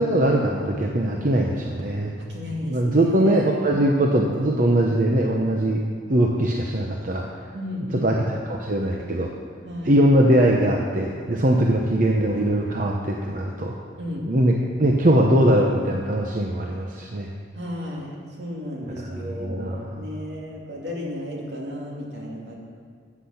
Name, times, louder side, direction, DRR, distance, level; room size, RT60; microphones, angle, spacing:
voice 1, 0.0-2.1 2.6-5.8 6.1-7.2 7.9-9.3 9.9-13.7 14.2-14.5 14.8-17.3 19.0-19.9, right 1 dB, 50° right, 0 dB, 0.9 m, -21 dB
voice 2, 2.2-3.5 7.5-8.1 9.6-10.0 14.0-14.2 17.5-18.1 18.4-22.5, left 1 dB, 75° right, -3 dB, 2.7 m, -33 dB
13.5 x 8.4 x 5.9 m, 2.1 s
head